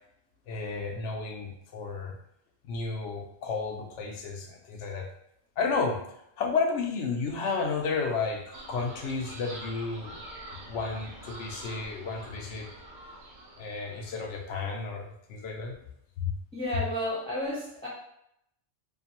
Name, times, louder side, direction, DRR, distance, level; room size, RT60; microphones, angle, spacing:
voice 1, 0.5-2.1 2.6-5.1 5.6-6.0 6.4-10.2 10.7-12.7 13.6-15.8 16.2-16.3, left 4 dB, 90° left, 2 dB, 0.9 m, -32 dB
sound 1, 8.5-14.4, right 1 dB, 60° right, 0.5 m, -46 dB
voice 2, 16.5-17.9, left 1 dB, 10° left, -6 dB, 0.5 m, -32 dB
2.6 x 2.5 x 2.8 m, 0.76 s
omnidirectional pair, 1.2 m